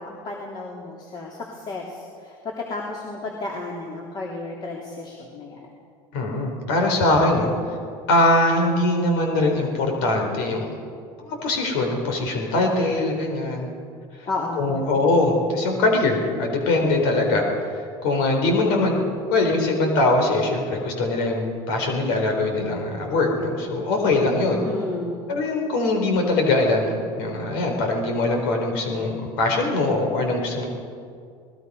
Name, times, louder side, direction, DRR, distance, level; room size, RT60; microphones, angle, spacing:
voice 1, 0.0-5.7 14.3-14.9 24.6-25.3, left 2 dB, 35° left, -2 dB, 3.3 m, -32 dB
voice 2, 6.1-7.8 8.1-10.7 11.2-13.7 14.2-14.3 14.6-24.7 25.3-30.7, left 2 dB, 85° left, 3 dB, 4.1 m, -22 dB
26.5 x 20.0 x 5.5 m, 2.3 s
cardioid pair, 130°, 12 cm